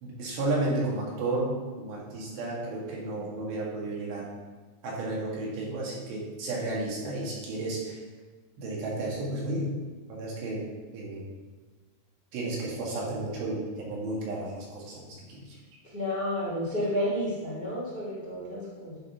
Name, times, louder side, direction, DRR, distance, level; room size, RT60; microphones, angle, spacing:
voice 1, 0.0-4.3 4.8-8.0 8.6-9.8 10.1-10.6 10.9-11.2 12.3-15.4, right 2 dB, 65° right, -4 dB, 3.6 m, -32 dB
voice 2, 15.9-19.0, equal, 40° left, -7 dB, 0.7 m, -31 dB
11.0 x 4.3 x 5.6 m, 1.4 s
omnidirectional pair, 5.9 m